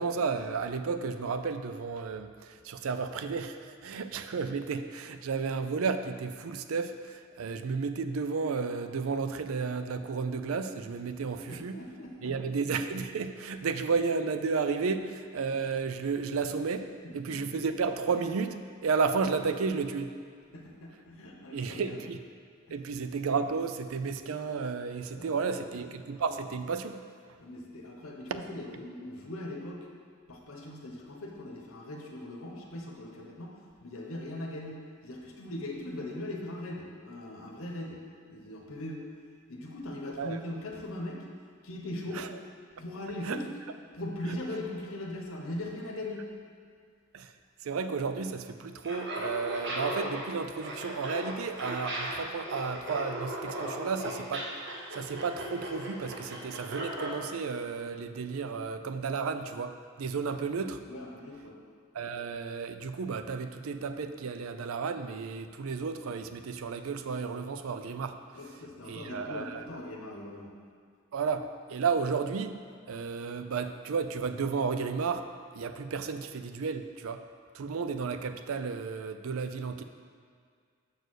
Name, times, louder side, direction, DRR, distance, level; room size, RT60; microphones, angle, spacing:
voice 1, 0.0-11.8 12.2-16.9 17.1-20.1 21.5-22.2 22.7-27.0 27.3-27.4 28.3-28.4 40.2-40.4 42.1-42.3 43.2-43.4 44.3-44.4 47.1-47.3 47.6-54.5 54.9-60.8 61.9-68.2 68.9-69.6 71.1-72.6 72.9-77.2 77.5-79.8, right 5 dB, 75° right, 9 dB, 0.4 m, -32 dB
voice 2, 11.5-12.6 17.0-17.4 20.5-22.0 22.7-22.8 25.1-25.7 27.4-29.9 30.3-38.0 38.3-39.1 39.5-41.3 41.6-42.3 42.8-43.5 43.9-46.3 60.9-61.6 68.3-70.5, left 1 dB, 75° left, 0 dB, 0.9 m, -40 dB
Laughter, 48.8-57.2, right 1 dB, 55° right, 1.2 m, -36 dB
6.5 x 4.6 x 6.3 m, 2.1 s
head